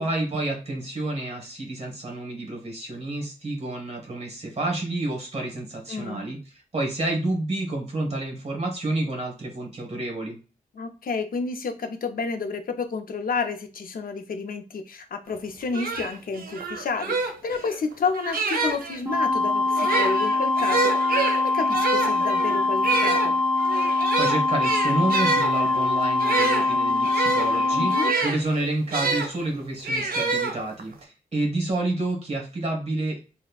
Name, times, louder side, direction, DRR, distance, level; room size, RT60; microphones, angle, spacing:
voice 1, 0.0-10.4 24.2-27.9 28.2-33.2, right 2 dB, 45° right, 1 dB, 1.3 m, -29 dB
voice 2, 5.9-6.3 10.8-23.4 27.8-28.1, left 4 dB, 75° left, 7 dB, 0.5 m, -30 dB
sound 1, 15.4-15.5 15.7-19.0 19.7-29.3 29.8-30.9, right 4 dB, 75° right, 0.6 m, -27 dB
sound 2, 19.1-28.1, left 3 dB, 20° right, 0.6 m, -23 dB
4.1 x 2.1 x 2.3 m, 0.33 s
wide cardioid pair, 130°, 15 cm